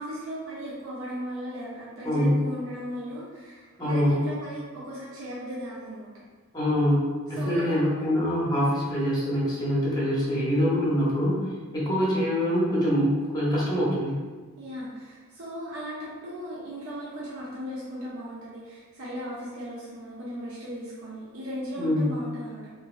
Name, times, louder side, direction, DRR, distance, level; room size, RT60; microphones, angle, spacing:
voice 1, 0.0-6.1 7.3-8.1 14.6-22.7, equal, 70° right, -7 dB, 0.6 m, -37 dB
voice 2, 2.0-2.4 3.8-4.2 6.5-11.4 11.7-14.2 21.8-22.1, equal, 20° left, -7 dB, 0.7 m, -24 dB
3.0 x 2.5 x 2.4 m, 1.4 s
head